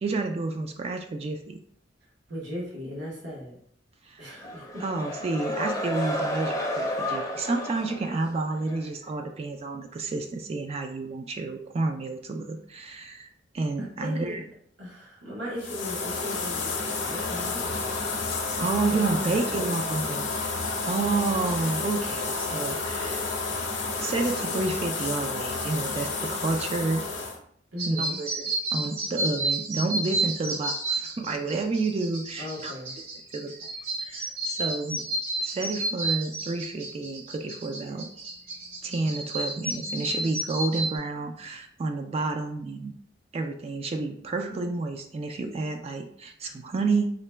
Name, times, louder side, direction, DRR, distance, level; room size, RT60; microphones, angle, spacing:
voice 1, 0.0-1.6 4.1-4.2 4.8-14.4 18.6-20.4 20.8-23.2 24.0-27.0 27.9-32.7 33.3-33.7 34.0-35.0 35.4-38.1 38.8-42.9 43.3-47.1, right 3 dB, 35° right, 5 dB, 0.3 m, -30 dB
voice 2, 2.3-3.6 4.2-4.8 13.8-14.4 14.8-17.8 19.0-19.7 27.7-28.2 32.4-32.9, left 1 dB, 70° right, -5 dB, 1.1 m, -37 dB
sound 1, 4.4-8.9, left 1 dB, 20° left, 0.5 m, -32 dB
sound 2, 15.6-27.4, left 4 dB, 70° left, 0.7 m, -30 dB
sound 3, 27.8-41.0, right 2 dB, 85° right, 1.4 m, -31 dB
3.8 x 2.2 x 3.2 m, 0.65 s
head